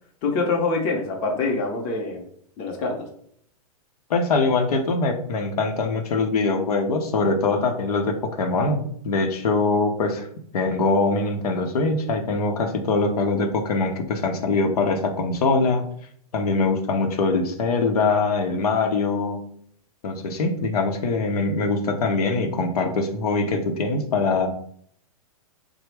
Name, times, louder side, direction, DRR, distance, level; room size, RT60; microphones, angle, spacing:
voice 1, 0.2-2.2 2.6-3.1, left 3 dB, 30° left, 2 dB, 0.6 m, -25 dB
voice 2, 4.1-10.3 10.5-15.8 16.3-19.4 20.0-24.5, left 3 dB, 85° left, 4 dB, 0.6 m, -23 dB
3.3 x 2.0 x 3.2 m, 0.63 s
hypercardioid pair, 150°, 19 cm